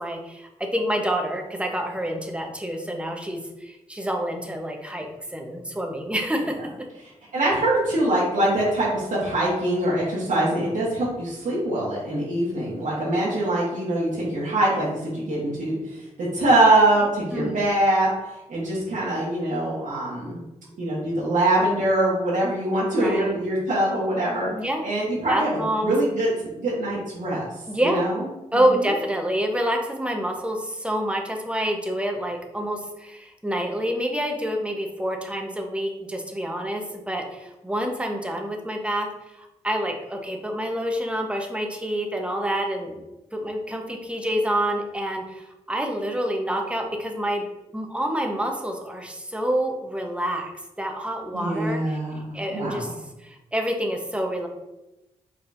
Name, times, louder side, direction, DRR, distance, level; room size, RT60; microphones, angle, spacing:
voice 1, 0.0-6.5 17.3-17.6 22.9-23.3 24.5-24.8 25.3-25.9 27.7-28.0 28.5-39.1 39.4-43.0 43.3-47.5 47.7-50.5 50.8-52.0 52.3-52.9 53.2-54.5, equal, 10° right, 2 dB, 1.0 m, -27 dB
voice 2, 7.3-18.1 18.5-20.4 20.8-24.5 24.8-27.5 27.8-28.2 28.5-28.6 51.3-52.8, right 1 dB, 75° right, -8 dB, 1.4 m, -23 dB
5.0 x 4.1 x 2.6 m, 0.97 s
cardioid pair, 50°, 13 cm